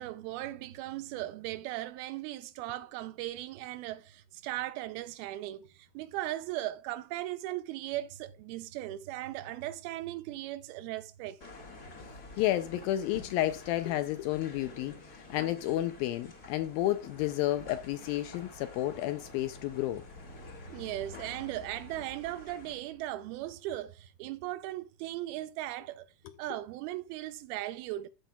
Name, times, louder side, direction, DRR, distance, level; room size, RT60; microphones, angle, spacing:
voice 1, 0.0-11.4 20.7-26.1 26.4-28.1, right 15 dB, 80° right, 2.4 m, -38 dB
sound 1, 11.4-22.7, left 2 dB, 40° left, 1.4 m, -50 dB
voice 2, 12.4-15.0 15.3-20.0, left 14 dB, 80° left, 2.2 m, -31 dB
Truck, 15.0-24.0, left 3 dB, 55° left, 2.7 m, -54 dB
15.0 x 5.5 x 2.3 m
omnidirectional pair, 4.5 m